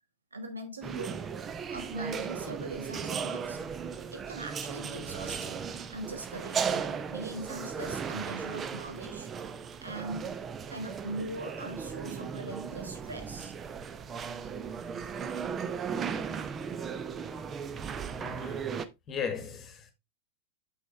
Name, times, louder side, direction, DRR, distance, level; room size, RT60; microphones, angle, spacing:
voice 1, 0.3-1.2 1.7-3.6 4.1-9.3 9.8-10.4 10.7-13.5, right 2 dB, 75° right, 1.5 m, -41 dB
sound 1, 0.8-18.9, right 6 dB, 25° right, 0.6 m, -36 dB
voice 2, 18.2-18.7 19.1-19.9, left 6 dB, 30° left, 1.5 m, -36 dB
6.5 x 6.2 x 3.2 m
figure-of-eight pair, 90°, 0 cm